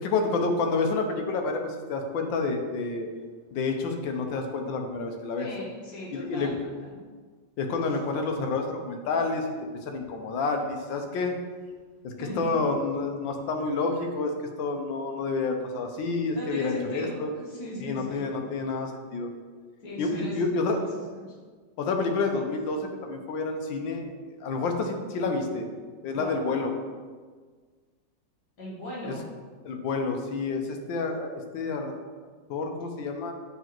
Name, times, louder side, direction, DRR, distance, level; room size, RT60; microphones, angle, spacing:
voice 1, 0.0-3.1 3.5-5.5 6.1-6.5 7.6-9.5 9.8-11.3 12.0-17.3 17.8-19.3 20.0-20.8 21.8-24.1 24.4-25.7 26.0-26.7 29.0-29.1 29.6-31.9 32.5-33.3, left 3 dB, 85° left, 4 dB, 1.4 m, -29 dB
voice 2, 5.4-6.6 12.2-12.4 15.8-15.9 16.3-18.3 19.8-20.4 21.0-21.3 26.1-26.4 28.6-29.3, left 1 dB, 60° left, -5 dB, 2.0 m, -38 dB
8.0 x 4.1 x 3.0 m, 1.5 s
omnidirectional pair, 2.0 m